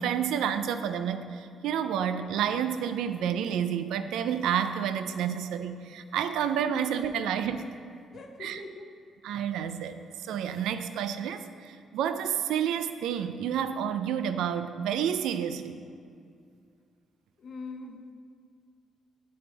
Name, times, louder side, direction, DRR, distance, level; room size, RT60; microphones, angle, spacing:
voice 1, 0.0-7.6 8.4-8.6 9.2-15.8, right 8 dB, 85° right, 10 dB, 0.4 m, -30 dB
voice 2, 8.1-8.9 17.4-18.1, left 3 dB, 55° left, 5 dB, 0.7 m, -42 dB
8.5 x 4.6 x 3.9 m, 2.3 s
cardioid pair, 90°, 0 cm